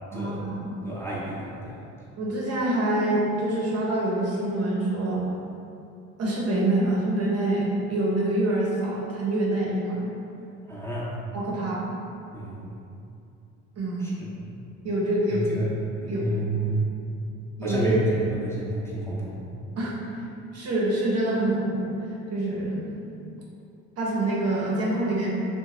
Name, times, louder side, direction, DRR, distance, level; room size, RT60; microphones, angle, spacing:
voice 1, 0.1-0.7 2.2-5.2 6.2-10.1 11.3-11.9 13.8-14.1 14.8-15.5 16.1-16.3 17.6-18.0 19.8-20.0 20.5-21.9 22.3-23.0 24.0-25.3, right 1 dB, 45° right, -4 dB, 0.7 m, -26 dB
voice 2, 0.8-1.8 10.7-11.1 12.3-12.7 14.0-14.5 15.3-15.7 16.0-16.8 17.6-18.1 18.4-19.5, right 1 dB, 5° left, -8 dB, 0.7 m, -30 dB
2.7 x 2.1 x 3.0 m, 2.7 s
supercardioid pair, 70°, 34 cm